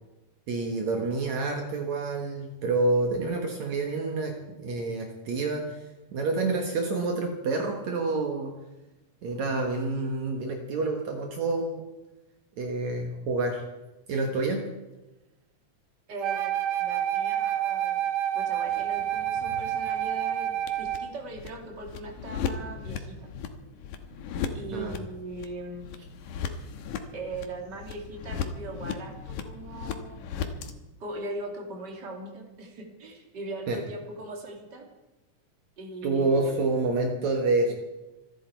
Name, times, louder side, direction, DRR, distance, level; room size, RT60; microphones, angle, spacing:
voice 1, 0.5-4.3 4.6-5.8 6.1-8.5 9.2-11.8 12.6-13.6 14.1-14.6 24.7-24.9 33.7-33.8 36.0-37.7, right 3 dB, 65° right, 2 dB, 2.7 m, -28 dB
voice 2, 16.1-18.0 18.3-23.3 24.5-25.9 27.1-30.2 31.0-34.8 35.8-36.6 37.7-37.8, right 2 dB, 35° right, 2 dB, 3.1 m, -39 dB
Wind instrument woodwind instrument, 16.2-21.1, right 11 dB, 90° right, 2.6 m, -28 dB
sound 1, 18.7-30.7, left 6 dB, 80° left, 2.7 m, -37 dB
26.5 x 10.5 x 4.6 m, 1.0 s
omnidirectional pair, 3.6 m